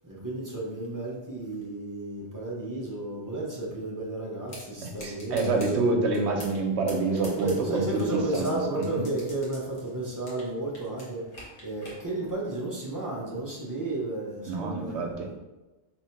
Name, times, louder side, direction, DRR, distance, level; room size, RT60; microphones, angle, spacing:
voice 1, 0.0-5.7 7.4-15.1, right 2 dB, 20° right, -5 dB, 0.8 m, -33 dB
sound 1, 4.5-4.6 5.0-5.7 6.1-6.6 6.9-8.5 8.8-10.5 10.7-12.0, left 1 dB, 50° left, 1.3 m, -43 dB
voice 2, 4.8-9.0 14.5-15.3, right 3 dB, 70° right, 2 dB, 0.9 m, -27 dB
3.1 x 2.8 x 4.5 m, 1.1 s
omnidirectional pair, 1.2 m